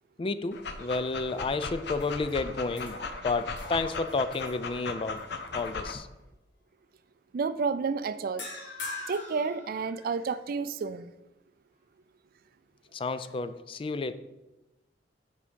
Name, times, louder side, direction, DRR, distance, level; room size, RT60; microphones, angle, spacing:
voice 1, 0.2-3.0 3.2-5.3 5.5-6.1 12.9-14.1, left 3 dB, 30° left, 0.3 m, -31 dB
Dog, 0.5-5.9, left 4 dB, 65° left, 0.7 m, -38 dB
sound 1, 1.0-1.5 1.9-5.2 5.6-5.9 8.4-10.3, left 2 dB, 85° left, 2.0 m, -44 dB
voice 2, 7.3-8.5 9.1-11.1, right 5 dB, 55° right, 0.4 m, -30 dB
7.6 x 4.8 x 5.1 m
head